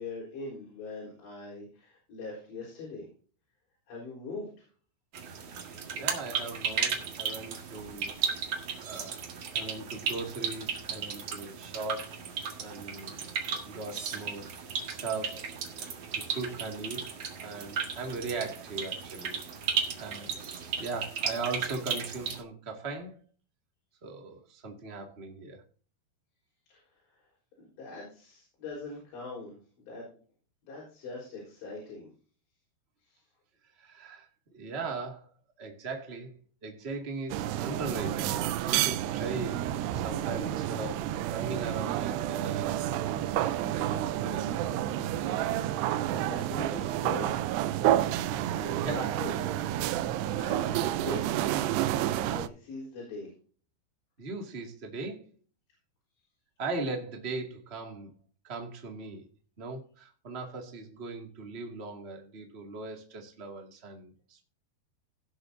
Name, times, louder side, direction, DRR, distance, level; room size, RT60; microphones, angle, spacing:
voice 1, 0.0-3.1 3.9-4.7 26.7-27.2 27.6-30.2 30.7-32.1 33.0-33.2 45.3-45.4 45.7-45.8 46.3-47.4 48.5-49.4 50.4-51.3 52.2-53.3, left 3 dB, 85° left, -3 dB, 6.3 m, -42 dB
sound 1, 5.1-22.4, right 6 dB, 50° right, 2.2 m, -35 dB
voice 2, 5.9-8.5 8.8-9.2 9.5-12.2 12.6-13.2 13.6-19.4 20.0-20.4 20.8-23.2 24.0-25.6 33.8-35.3 35.6-36.3 36.6-42.7 43.3-44.5 48.7-49.6 54.2-55.3 56.6-58.1 58.4-59.3 59.6-64.4, right 3 dB, 30° right, 2 dB, 1.2 m, -39 dB
sound 2, 37.3-52.5, right 12 dB, 80° right, 2.7 m, -30 dB
17.5 x 7.9 x 2.7 m, 0.40 s
omnidirectional pair, 4.9 m